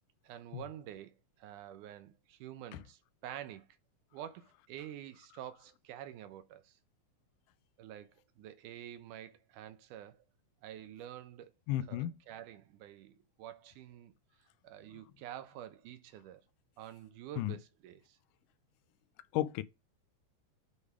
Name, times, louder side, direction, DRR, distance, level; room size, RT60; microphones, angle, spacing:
voice 1, 0.2-3.7 4.1-6.8 7.8-10.2 10.6-11.5 11.8-14.1 14.6-16.4 16.8-18.2, right 11 dB, 80° right, 2.2 m, -48 dB
voice 2, 11.7-12.1 17.4-17.6 19.3-19.6, left 13 dB, 85° left, 2.1 m, -33 dB
8.2 x 3.4 x 4.8 m
omnidirectional pair, 3.7 m